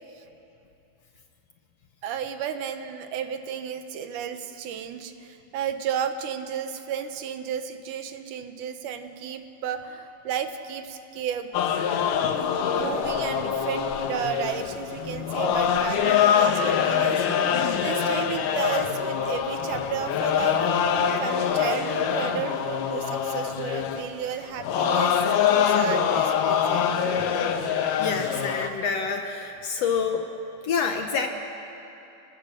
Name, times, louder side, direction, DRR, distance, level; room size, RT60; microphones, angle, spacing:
voice 1, 2.0-11.5 12.7-17.2 17.8-20.6 21.2-25.1 25.5-26.9, right 8 dB, 75° right, 8 dB, 2.5 m, -33 dB
sound 1, 11.5-28.7, left 8 dB, 85° left, 2.7 m, -24 dB
voice 2, 28.0-30.3 30.6-31.3, left 5 dB, 65° left, 4 dB, 1.8 m, -27 dB
26.0 x 20.5 x 6.5 m, 2.9 s
omnidirectional pair, 3.7 m